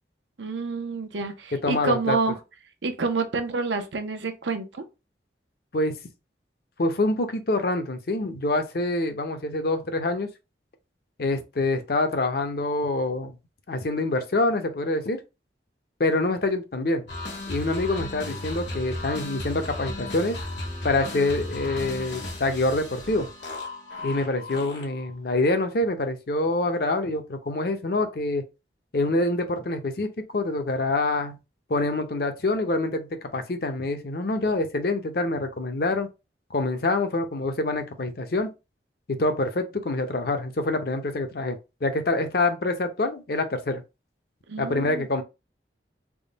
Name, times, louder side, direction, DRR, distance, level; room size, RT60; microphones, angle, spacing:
voice 1, 0.4-2.4 2.8-4.8 44.5-45.1, right 3 dB, 90° right, 0.7 m, -28 dB
voice 2, 1.5-2.2 5.7-6.0 6.8-10.3 11.2-13.4 13.7-15.2 16.0-17.0 17.5-20.4 20.8-23.3 24.0-28.4 28.9-31.4 31.7-36.1 36.5-38.5 39.1-43.8 44.6-45.2, left 2 dB, 55° left, 0.6 m, -26 dB
sound 1, 17.1-25.1, left 2 dB, 80° left, 1.4 m, -35 dB
3.5 x 2.1 x 3.9 m
head